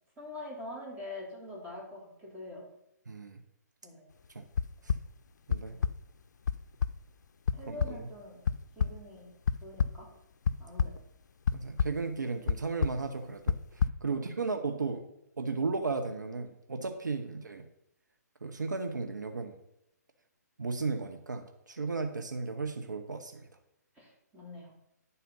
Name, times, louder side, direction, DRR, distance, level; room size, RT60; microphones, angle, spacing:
voice 1, 0.2-2.7 3.8-4.1 5.7-5.8 7.5-8.4 8.7-9.3 9.6-10.1 10.6-10.9 14.1-14.2 23.9-24.7, left 1 dB, 15° right, -4 dB, 3.2 m, -44 dB
voice 2, 3.1-3.4 4.3-4.4 4.8-4.9 5.5-5.8 7.7-8.0 11.5-13.6 14.0-15.0 15.4-17.6 18.4-19.6 20.6-23.5, right 4 dB, 85° right, 6 dB, 1.0 m, -35 dB
sound 1, 4.5-5.0 5.5-5.9 6.5-6.6 6.8-6.9 7.5-7.6 7.8-7.9 8.5-8.9 9.5-9.9 10.5-11.0 11.5-11.9 12.5-12.6 12.8-13.0 13.5-13.9, left 6 dB, 75° left, 0.4 m, -27 dB
10.5 x 4.2 x 5.4 m, 0.82 s
hypercardioid pair, 135°, 10 cm